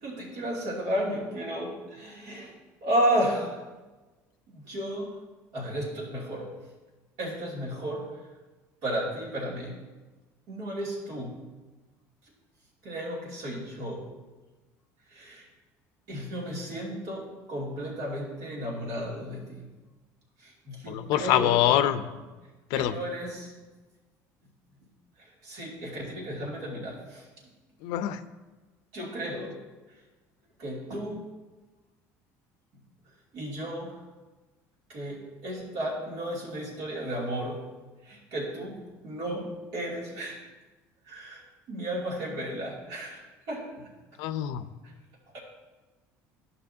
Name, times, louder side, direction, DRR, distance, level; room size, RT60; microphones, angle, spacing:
voice 1, 0.0-2.5 2.8-3.6 4.5-5.1 5.5-6.5 7.2-8.1 8.8-9.8 10.5-11.4 12.8-14.1 15.1-15.5 16.1-19.7 20.4-21.6 22.7-23.6 25.2-27.3 28.9-29.6 30.6-31.2 33.3-34.0 34.9-37.7 38.0-40.4 41.1-43.2 43.5-43.9 45.3-45.4, right 1 dB, 70° right, -4 dB, 2.6 m, -33 dB
voice 2, 20.9-22.0 22.7-22.9 27.8-28.2 44.2-44.6, left 12 dB, 75° left, 12 dB, 0.5 m, -24 dB
12.0 x 5.5 x 2.7 m, 1.2 s
cardioid pair, 115°, 7 cm